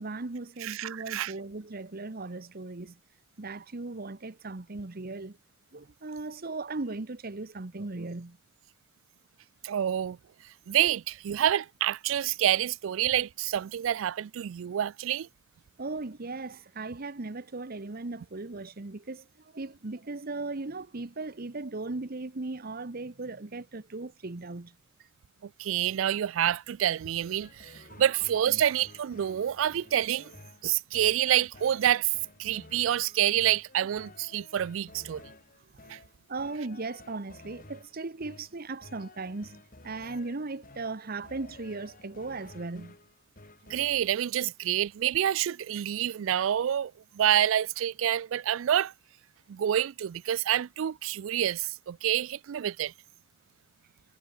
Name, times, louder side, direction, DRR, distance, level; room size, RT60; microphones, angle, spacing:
voice 1, 0.0-2.9 3.4-5.4 5.7-8.4 15.8-19.2 19.5-24.7 27.9-28.0 28.5-28.6 36.3-42.9, right 3 dB, 50° right, 1.0 m, -37 dB
voice 2, 0.6-1.3 9.6-10.2 10.7-15.3 25.6-30.3 30.6-32.1 32.4-35.2 35.9-36.0 43.7-48.9 49.5-52.9, right 10 dB, 75° right, 0.4 m, -27 dB
sound 1, 27.4-44.2, left 2 dB, 45° left, 6.1 m, -53 dB
head